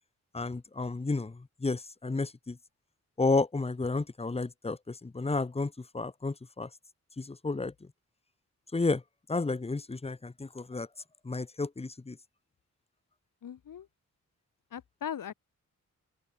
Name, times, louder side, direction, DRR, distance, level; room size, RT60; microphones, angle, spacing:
voice 1, 0.3-2.6 3.2-6.7 7.2-7.7 8.7-9.0 9.3-10.9 11.2-12.2, left 3 dB, 20° left, 1.0 m, -32 dB
voice 2, 13.4-13.9 14.7-15.3, left 9 dB, 85° left, 2.5 m, -39 dB
open air
cardioid pair, 90°, 32 cm